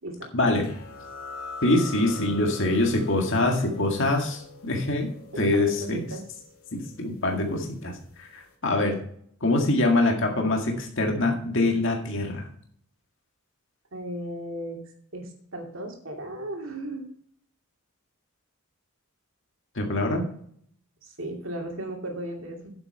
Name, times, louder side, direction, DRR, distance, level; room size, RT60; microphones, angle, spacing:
voice 1, 0.3-0.7 1.6-5.1 5.4-6.1 6.7-9.0 9.4-12.5 19.8-20.2, left 2 dB, 55° left, 2 dB, 1.9 m, -24 dB
sound 1, 0.6-7.9, left 3 dB, 70° left, 2.1 m, -43 dB
voice 2, 5.3-6.3 13.9-14.8 15.1-17.0 21.0-22.7, right 1 dB, 60° right, 2 dB, 2.4 m, -36 dB
9.6 x 7.9 x 4.5 m, 0.62 s
head